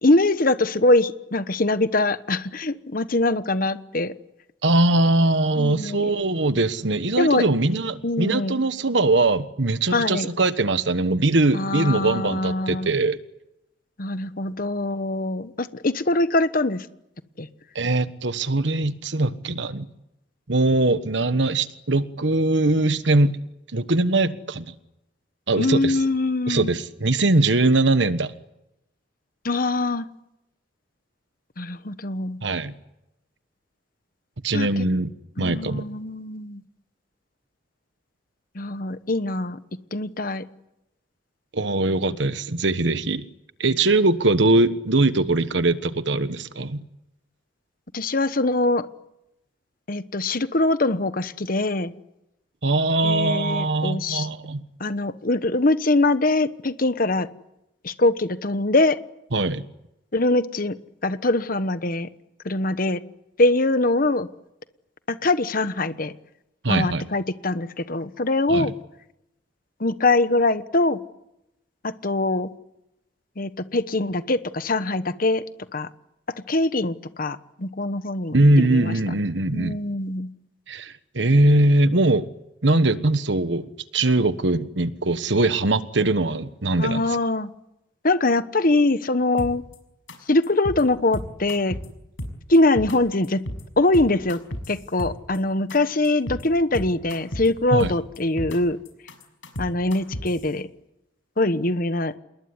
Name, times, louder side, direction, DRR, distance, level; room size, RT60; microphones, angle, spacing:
voice 1, 0.0-4.1 5.6-6.0 7.2-7.4 8.0-8.6 9.9-10.3 11.5-12.9 14.0-16.9 17.4-17.5 25.6-26.7 29.4-30.1 31.6-32.4 34.5-34.8 35.4-36.6 38.5-39.6 39.9-40.4 47.9-48.9 49.9-51.9 53.0-54.3 54.8-57.3 57.8-59.0 60.1-60.8 61.0-62.1 62.4-63.0 63.4-64.3 65.1-66.1 66.7-68.7 69.8-71.0 71.8-72.5 73.4-75.4 75.7-75.9 76.5-78.9 79.5-80.3 86.8-87.5 88.0-89.6 90.3-91.8 92.5-93.4 93.8-94.4 94.7-98.8 99.6-100.7 101.4-102.1, left 2 dB, 50° left, 12 dB, 1.2 m, -23 dB
voice 2, 4.6-13.2 17.7-19.9 20.5-23.4 23.7-24.7 25.5-26.0 26.5-28.3 32.4-32.7 34.4-35.1 35.4-35.8 41.5-43.2 43.6-46.8 52.6-54.6 59.3-59.6 66.6-67.1 68.5-68.7 78.3-79.8 80.7-82.3 82.6-87.0 97.7-97.9, right 2 dB, 70° right, 12 dB, 1.3 m, -21 dB
sound 1, 89.4-89.8 90.1-90.2 90.4-90.8 91.1-91.9 92.2-93.0 93.2-93.6 93.9-95.4 95.7-95.8 96.0-96.4 96.7-97.5 97.8-98.6 98.9-100.4, equal, 80° left, 6.3 m, -32 dB
28.0 x 21.5 x 9.8 m, 0.88 s
head